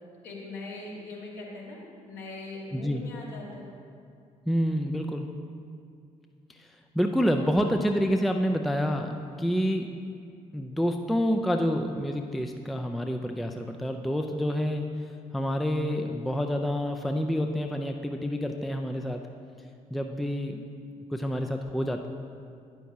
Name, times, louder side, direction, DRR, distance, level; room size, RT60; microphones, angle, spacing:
voice 1, 0.2-3.7 7.4-7.5, left 2 dB, 60° left, -5 dB, 2.3 m, -41 dB
voice 2, 2.7-3.0 4.5-5.3 6.6-6.7 6.9-9.9 10.5-14.9 15.3-19.2 19.9-20.6 21.1-22.1, equal, ahead, 4 dB, 0.5 m, -28 dB
12.5 x 10.0 x 2.8 m, 2.4 s
figure-of-eight pair, 45°, 19 cm